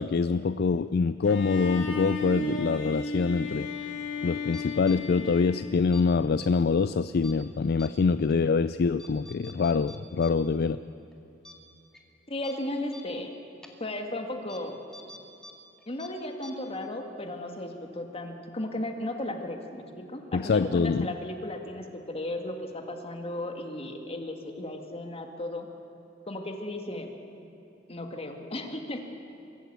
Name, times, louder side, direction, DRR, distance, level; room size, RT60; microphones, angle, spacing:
voice 1, 0.0-3.7 4.2-10.8 20.3-21.1, left 4 dB, 55° left, 14 dB, 0.4 m, -25 dB
Bowed string instrument, 1.2-6.3, left 3 dB, 80° left, 2.1 m, -35 dB
sound 1, 4.5-5.0 5.8-6.0 6.4-6.5 7.2-7.4 7.8-7.9 8.3-8.4 9.0-10.3 10.6-10.7 11.1-11.2 11.4-11.5 11.9-12.0 12.4-12.5 12.9-13.0 13.6-13.7 14.5-14.6 14.9-15.5 15.8-16.1 16.4-16.5, equal, 5° left, 2.0 m, -47 dB
voice 2, 12.3-13.3 13.8-14.8 15.9-25.7 26.3-27.2 27.9-29.0, left 1 dB, 30° left, 4 dB, 2.0 m, -35 dB
23.5 x 14.0 x 8.3 m, 2.9 s
head